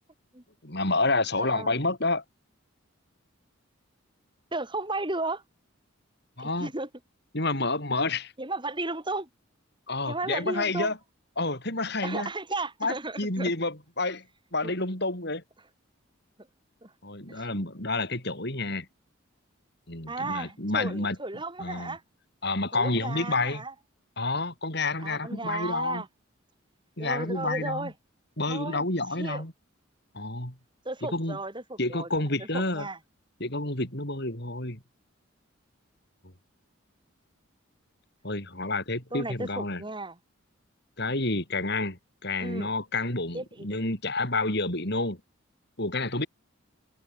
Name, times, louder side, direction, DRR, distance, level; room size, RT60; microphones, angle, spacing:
voice 1, 0.6-2.2 6.4-6.7 7.3-8.3 9.9-11.0 11.4-12.3 12.8-14.2 14.5-15.4 17.0-18.9 19.9-21.2 21.6-22.0 22.4-23.6 24.2-26.0 27.0-27.9 28.4-29.5 30.1-30.6 31.0-31.4 31.8-32.9 33.4-34.8 38.2-39.8 41.0-45.2 45.8-46.3, left 2 dB, 55° left, 7.2 m, -29 dB
voice 2, 1.4-1.8 4.5-5.4 6.4-6.9 8.4-9.3 10.1-10.9 12.0-13.5 14.6-14.7 16.8-16.9 17.3-17.5 20.1-22.0 22.7-23.7 25.0-26.1 27.0-27.9 28.5-28.8 29.2-29.4 30.8-32.1 32.5-33.0 39.1-40.2 42.4-42.7 43.3-43.7, right 2 dB, 25° right, 5.2 m, -34 dB
head